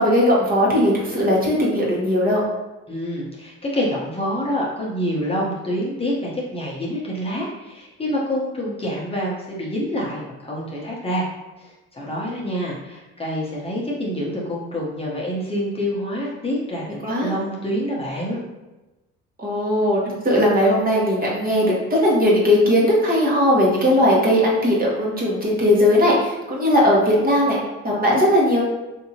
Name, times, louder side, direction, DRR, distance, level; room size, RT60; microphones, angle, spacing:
voice 1, 0.0-2.5 17.0-17.3 19.4-28.6, left 1 dB, 30° right, -4 dB, 1.2 m, -18 dB
voice 2, 2.9-11.3 11.6-16.8 17.2-18.4, equal, 20° left, -5 dB, 0.9 m, -27 dB
3.6 x 2.8 x 2.8 m, 1.1 s
supercardioid pair, 70°, 29 cm